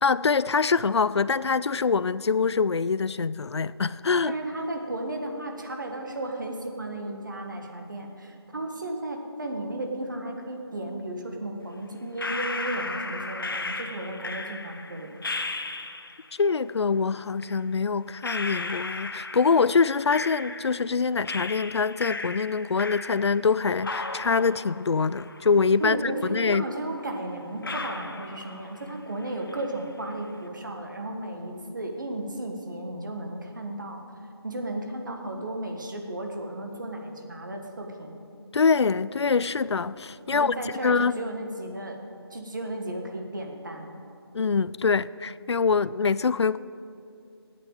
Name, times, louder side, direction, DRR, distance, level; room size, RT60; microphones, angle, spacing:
voice 1, 0.0-4.3 16.4-26.7 38.5-41.2 44.3-46.6, left 5 dB, 90° left, 0.4 m, -24 dB
voice 2, 4.2-15.2 25.8-34.0 34.4-38.2 40.3-42.0 42.3-43.9, right 1 dB, 45° right, 1.5 m, -34 dB
sound 1, 12.2-16.3 17.4-17.5 18.2-20.9 21.2-23.5 23.8-25.9 26.2-26.3 27.0-27.1 27.6-29.0 29.2-29.8, left 3 dB, 55° left, 0.9 m, -35 dB
9.1 x 8.2 x 8.9 m
figure-of-eight pair, 175°, 14 cm